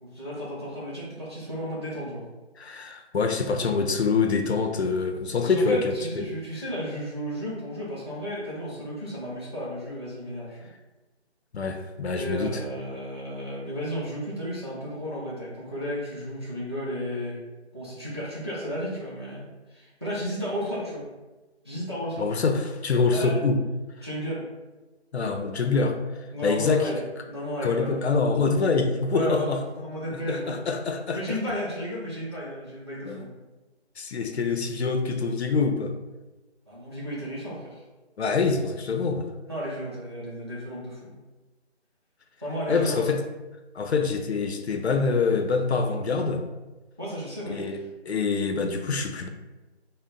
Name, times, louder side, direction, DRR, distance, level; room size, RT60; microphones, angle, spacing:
voice 1, 0.0-2.2 5.4-10.6 12.1-17.4 17.7-21.1 21.6-22.3 23.1-23.4 24.0-24.5 26.3-27.0 27.3-28.0 29.1-30.6 31.1-33.3 36.7-37.8 39.5-41.2 42.4-43.0 47.0-47.7, equal, 25° right, -8 dB, 0.7 m, -33 dB
voice 2, 2.6-6.2 11.5-12.6 22.2-23.6 24.0-24.1 25.1-26.0 26.4-26.9 27.6-29.6 30.1-31.4 33.1-33.3 34.0-35.9 38.2-39.3 42.7-43.2 43.7-46.4 47.5-47.8 48.1-49.3, left 4 dB, 70° left, 5 dB, 0.5 m, -25 dB
3.8 x 2.1 x 3.6 m, 1.1 s
figure-of-eight pair, 175°, 34 cm